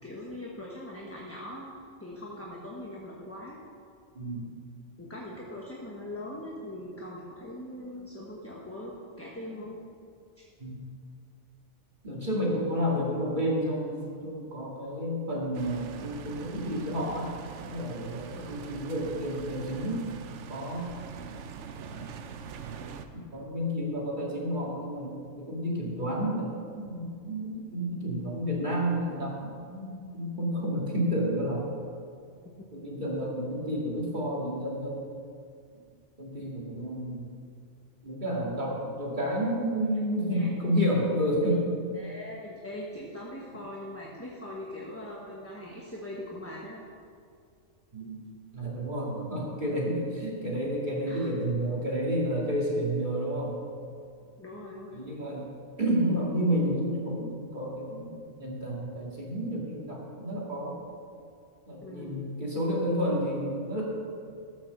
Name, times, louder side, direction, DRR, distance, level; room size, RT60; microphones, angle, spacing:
voice 1, 0.0-3.6 5.0-9.8 10.4-10.5 12.2-12.5 18.3-18.6 32.6-32.7 39.9-40.0 40.3-40.5 41.4-41.5 41.9-46.8 51.0-51.4 54.4-55.1 61.8-62.2, left 1 dB, 10° left, -4 dB, 1.2 m, -41 dB
voice 2, 4.1-4.5 10.6-10.8 12.0-17.3 17.6-20.0 20.5-20.9 21.9-22.1 22.4-22.5 23.3-31.7 32.7-35.1 36.2-37.3 38.0-41.7 47.9-48.2 48.5-53.6 54.9-55.5 55.8-60.8 61.7-63.8, equal, 40° right, -4 dB, 2.4 m, -30 dB
sound 1, 15.5-23.1, right 7 dB, 75° right, 1.0 m, -43 dB
13.5 x 6.2 x 6.9 m, 2.3 s
omnidirectional pair, 1.2 m